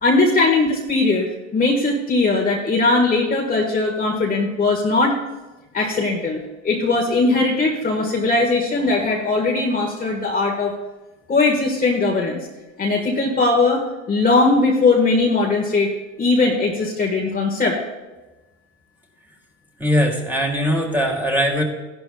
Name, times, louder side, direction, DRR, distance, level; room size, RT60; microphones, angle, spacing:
voice 1, 0.0-5.2 5.7-10.7 11.3-12.4 12.8-13.8 14.1-15.9 16.2-17.8, left 3 dB, 20° left, -2 dB, 1.5 m, -19 dB
voice 2, 19.8-21.6, equal, 5° right, 0 dB, 2.5 m, -20 dB
16.0 x 11.5 x 2.3 m, 1.1 s
hypercardioid pair, 105°, 43 cm